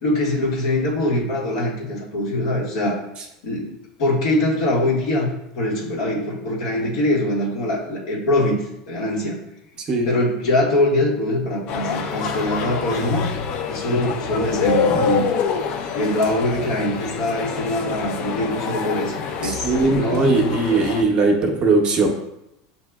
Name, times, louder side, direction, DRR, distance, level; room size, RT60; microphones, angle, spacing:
voice 1, 0.0-3.0 3.4-3.7 4.0-9.4 10.0-13.3 13.7-15.3 15.9-20.3, left 1 dB, 80° left, -3 dB, 1.6 m, -23 dB
sound 1, 11.7-21.0, left 6 dB, 50° left, 0.5 m, -26 dB
voice 2, 19.4-22.1, right 3 dB, 30° right, 2 dB, 0.8 m, -19 dB
7.7 x 2.7 x 2.3 m, 0.86 s
supercardioid pair, 135°, 3 cm